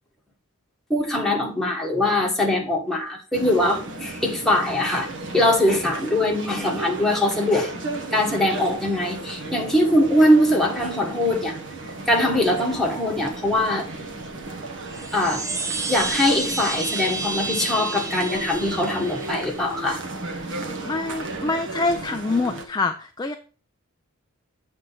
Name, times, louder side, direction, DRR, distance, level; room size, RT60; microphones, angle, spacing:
voice 1, 0.9-5.1 5.3-7.7 8.1-11.6 12.1-13.9 15.1-15.4 15.9-20.0, left 1 dB, ahead, -1 dB, 1.5 m, -22 dB
sound 1, 3.3-22.7, right 2 dB, 60° right, 1.2 m, -34 dB
Chime, 14.9-19.6, right 3 dB, 15° right, 0.7 m, -30 dB
voice 2, 20.8-23.4, left 3 dB, 20° left, 6 dB, 0.4 m, -25 dB
7.6 x 3.5 x 5.8 m, 0.38 s
head